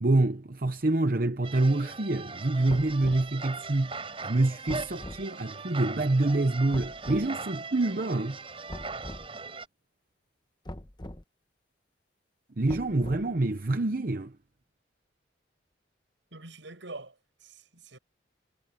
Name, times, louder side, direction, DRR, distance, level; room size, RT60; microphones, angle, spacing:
voice 1, 0.0-3.9 4.2-8.4 12.6-14.4, right 2 dB, 50° right, 0.8 m, -26 dB
sound 1, 1.4-9.7, right 4 dB, 30° right, 5.3 m, -40 dB
sound 2, 2.7-3.3 4.7-5.3 6.7-7.3 8.7-9.3 10.7-11.2 12.7-13.4, left 1 dB, 25° left, 1.0 m, -41 dB
voice 2, 16.3-18.0, right 2 dB, 75° right, 7.2 m, -45 dB
head